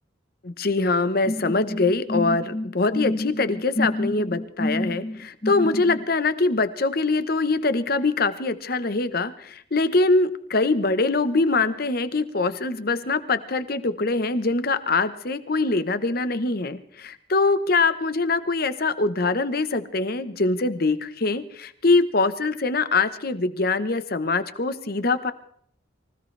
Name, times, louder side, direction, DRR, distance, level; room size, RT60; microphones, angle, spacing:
voice 1, 0.4-25.3, left 3 dB, 50° left, 12 dB, 1.0 m, -23 dB
sound 1, 1.2-6.0, left 1 dB, 30° left, 0.7 m, -29 dB
24.5 x 16.5 x 3.3 m, 0.65 s
head